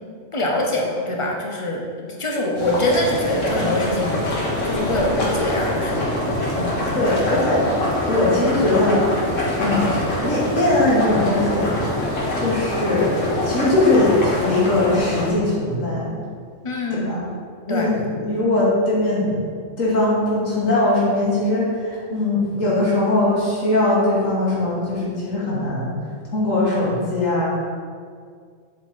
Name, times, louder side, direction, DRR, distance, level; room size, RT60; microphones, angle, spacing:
voice 1, 0.3-4.4 4.6-7.5 16.6-17.2 17.7-17.9, left 1 dB, 25° left, -1 dB, 0.9 m, -25 dB
sound 1, 2.6-15.3, left 1 dB, 75° left, 1.7 m, -24 dB
voice 2, 6.9-7.6 8.1-9.1 9.6-9.9 10.2-11.8 12.4-13.2 13.4-16.1 17.0-17.2 17.7-19.4 19.8-25.9 26.3-27.4, left 2 dB, 90° left, -7 dB, 1.9 m, -20 dB
7.7 x 4.5 x 4.1 m, 2.1 s
omnidirectional pair, 1.3 m